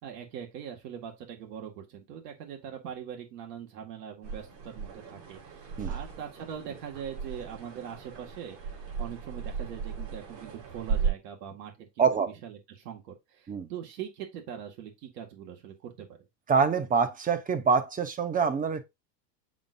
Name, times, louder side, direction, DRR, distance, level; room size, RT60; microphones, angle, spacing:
voice 1, 0.0-12.0 12.4-16.2, right 8 dB, 70° right, 2.1 m, -42 dB
sound 1, 4.2-11.1, right 6 dB, 85° right, 4.7 m, -36 dB
voice 2, 12.0-12.3 13.5-13.7 16.5-18.8, right 5 dB, 15° right, 0.8 m, -25 dB
7.2 x 5.0 x 2.7 m
supercardioid pair, 125°, 49 cm